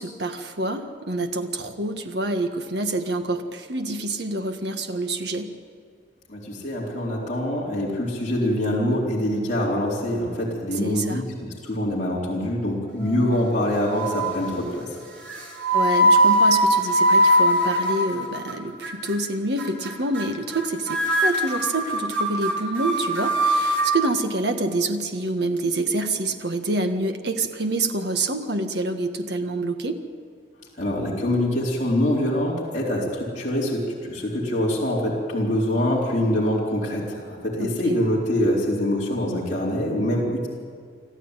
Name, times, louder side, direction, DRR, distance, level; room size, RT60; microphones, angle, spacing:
voice 1, 0.0-5.5 10.8-11.2 15.7-30.0 37.6-37.7, right 2 dB, 60° right, 6 dB, 1.6 m, -27 dB
voice 2, 6.3-14.9 30.8-40.5, left 1 dB, 40° left, -5 dB, 4.1 m, -24 dB
sound 1, 13.0-13.6 13.9-14.5 15.2-18.5 18.8-19.2 19.6-19.9 20.1-20.2 20.5-20.6 20.9-23.9, equal, 85° right, 4.7 m, -21 dB
26.0 x 14.0 x 9.1 m, 2.1 s
head